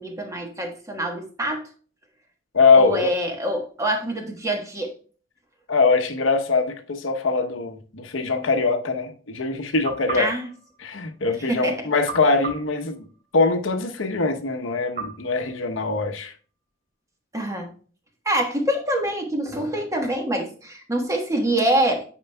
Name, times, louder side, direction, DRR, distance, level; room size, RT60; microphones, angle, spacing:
voice 1, 0.0-1.6 2.8-4.9 10.1-10.5 11.5-11.9 17.3-17.7 18.2-22.0, right 1 dB, 15° right, 1.2 m, -25 dB
voice 2, 2.5-3.1 5.7-10.3 10.8-13.1 13.3-16.3, left 4 dB, 80° left, 0.9 m, -22 dB
sound 1, 9.8-11.4 12.1-13.7 15.0-16.3, right 4 dB, 45° right, 3.0 m, -38 dB
8.8 x 4.8 x 2.2 m
head